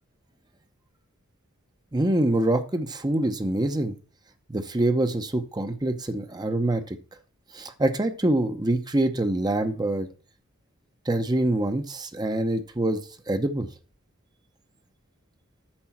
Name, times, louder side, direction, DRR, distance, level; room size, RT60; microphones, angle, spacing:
voice 1, 1.9-3.9 4.5-7.0 7.5-10.1 11.1-13.0 13.3-13.7, right 1 dB, 20° right, 8 dB, 0.8 m, -25 dB
8.7 x 6.9 x 5.8 m, 0.37 s
head